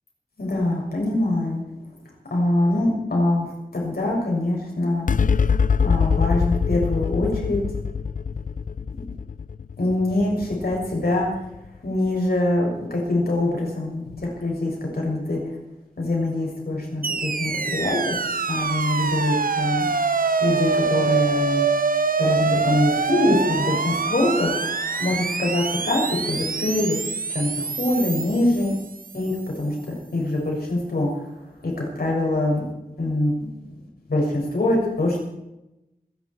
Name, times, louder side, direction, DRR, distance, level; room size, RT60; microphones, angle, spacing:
voice 1, 0.4-1.6 2.3-5.4 5.8-7.6 8.9-9.0 9.8-11.3 11.8-15.5 16.0-18.2 18.5-19.9 20.4-21.6 22.2-24.7 25.0-26.9 27.3-28.7 29.1-31.3 31.6-32.6 33.0-33.5 34.1-35.2, left 1 dB, 85° left, -2 dB, 6.4 m, -24 dB
sound 1, 5.1-11.8, left 5 dB, 60° left, 0.4 m, -24 dB
sound 2, 17.0-29.3, right 4 dB, 65° right, 0.8 m, -25 dB
26.5 x 10.5 x 4.7 m, 0.92 s
wide cardioid pair, 65°, 16 cm